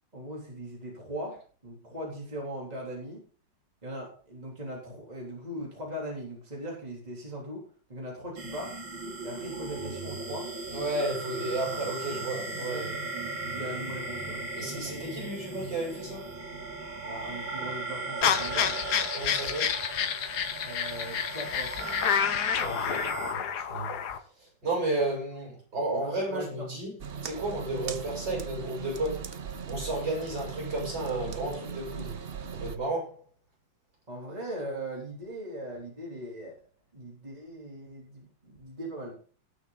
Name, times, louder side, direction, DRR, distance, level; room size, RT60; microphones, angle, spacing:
voice 1, 0.1-3.2 3.8-8.8 9.2-10.5 11.7-11.8 12.6-14.5 17.0-18.7 20.6-21.8 25.9-26.7 34.1-36.6 36.9-39.2, right 1 dB, 20° right, 3.4 m, -39 dB
sound 1, 8.4-23.3, right 3 dB, 90° right, 3.0 m, -37 dB
voice 2, 10.7-12.9 14.6-16.3 19.1-19.8 22.5-22.9 23.3-24.0 24.4-26.9 27.2-29.3 29.7-32.2 32.5-33.2, right 2 dB, 70° right, 8.1 m, -33 dB
sound 2, 18.2-24.2, left 8 dB, 65° left, 1.5 m, -29 dB
sound 3, 27.0-32.8, right 7 dB, 50° right, 0.7 m, -39 dB
18.5 x 6.4 x 3.9 m
omnidirectional pair, 2.0 m